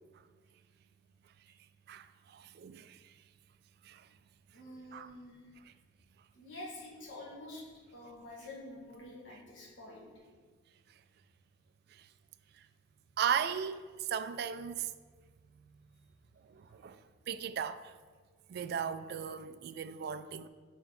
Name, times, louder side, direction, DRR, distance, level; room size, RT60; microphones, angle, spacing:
voice 1, 1.9-3.0 3.8-4.1 4.9-5.1 13.2-14.9 16.5-17.0 17.3-17.9 18.5-20.5, right 8 dB, 55° right, 0.3 m, -36 dB
voice 2, 4.5-5.4 6.3-7.6 7.9-10.1, left 1 dB, 75° left, 1.8 m, -48 dB
8.5 x 4.3 x 4.1 m
head